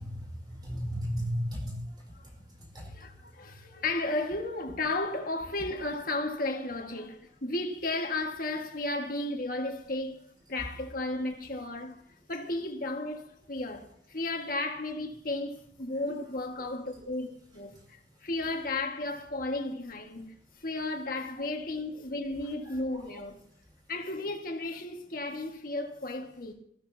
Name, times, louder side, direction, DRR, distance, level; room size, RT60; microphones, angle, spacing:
voice 1, 0.0-3.1 3.7-3.8 16.0-16.1 16.6-16.7 17.0-17.1 22.6-23.2, equal, 25° right, 4.8 m, -37 dB
voice 2, 2.9-12.0 12.3-20.3 20.6-23.4 23.9-26.5, left 2 dB, 50° left, 1.7 m, -34 dB
19.0 x 15.0 x 2.8 m
head